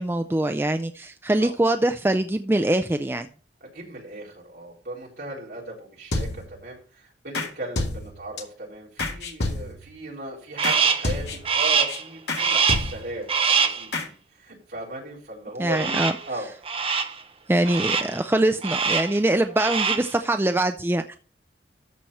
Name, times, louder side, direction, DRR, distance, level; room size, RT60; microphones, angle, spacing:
voice 1, 0.0-3.3 15.6-16.1 17.5-21.1, right 1 dB, 10° right, 7 dB, 0.4 m, -23 dB
voice 2, 3.6-16.5 17.6-17.7, right 1 dB, 55° right, -4 dB, 4.1 m, -37 dB
sound 1, 6.1-6.6 7.3-7.5 7.8-8.4 9.0-9.9 10.6-10.8 11.0-11.6 11.9-12.0 12.3-12.4 12.7-13.2 13.9-14.1, left 2 dB, 65° left, 2.3 m, -29 dB
Crow, 10.6-11.1 11.5-12.0 12.4-13.0 13.3-13.9 15.8-16.3 16.7-17.2 17.6-18.2 18.6-19.2 19.5-20.1, right 6 dB, 30° right, 0.8 m, -24 dB
13.5 x 4.5 x 5.6 m, 0.41 s
head